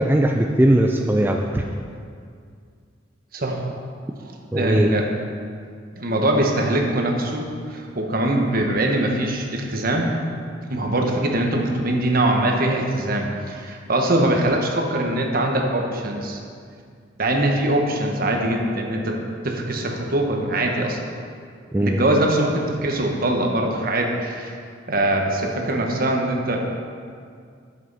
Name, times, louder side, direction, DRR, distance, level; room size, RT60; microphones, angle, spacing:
voice 1, 0.0-1.6 4.5-5.0 21.7-22.0, right 1 dB, 10° right, 2 dB, 0.4 m, -19 dB
voice 2, 3.3-3.7 4.2-5.1 5.9-10.1 10.7-16.4 17.2-19.2 19.4-21.0 21.8-24.5 24.9-26.7, right 1 dB, 50° right, 1 dB, 1.2 m, -22 dB
11.0 x 7.5 x 4.1 m, 2.2 s
head